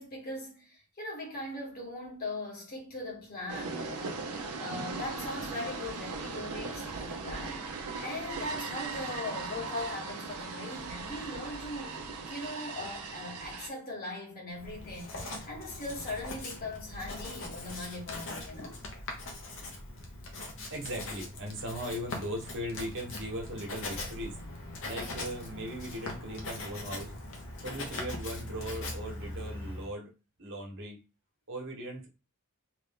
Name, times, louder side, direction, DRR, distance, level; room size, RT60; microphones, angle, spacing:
voice 1, 0.0-7.7 8.0-18.8, left 2 dB, 45° left, 1.5 m, -40 dB
sound 1, 3.5-13.7, right 4 dB, 85° right, 0.7 m, -39 dB
Writing, 14.5-29.9, left 2 dB, 60° left, 1.0 m, -41 dB
voice 2, 20.4-24.4 24.8-27.1 27.6-30.1 30.4-31.0 31.5-32.1, equal, 60° right, 1.2 m, -39 dB
3.1 x 2.6 x 3.6 m
head